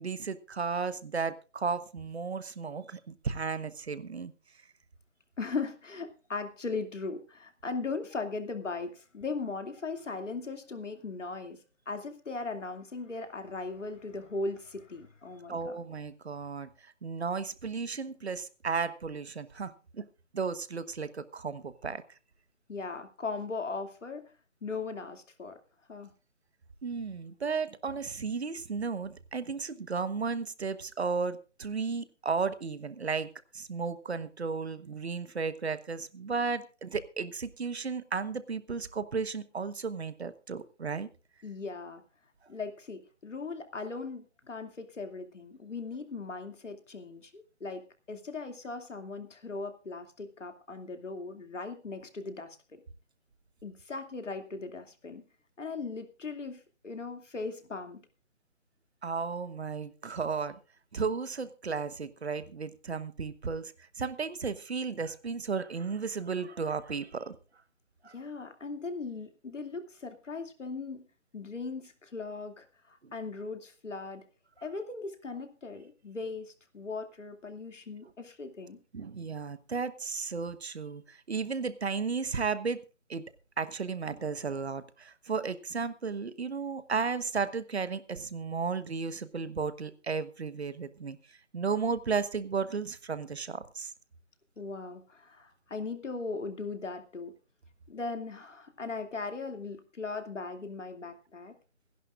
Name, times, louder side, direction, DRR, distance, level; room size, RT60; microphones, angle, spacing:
voice 1, 0.0-4.3 15.5-20.1 20.3-22.0 26.8-33.3 33.5-41.1 59.0-60.6 60.9-67.4 68.0-68.1 73.0-73.1 78.9-82.8 83.1-83.2 83.6-93.9, right 5 dB, 60° right, 13 dB, 1.2 m, -34 dB
voice 2, 5.4-15.8 22.7-24.2 24.6-25.6 25.9-26.1 41.4-42.0 42.5-47.8 48.1-52.8 53.6-55.2 55.6-58.0 68.1-71.1 71.3-74.2 74.6-78.8 94.6-97.3 97.9-101.5, left 3 dB, 75° left, 7 dB, 2.6 m, -38 dB
27.0 x 11.0 x 2.5 m, 0.32 s
hypercardioid pair, 170°, 37 cm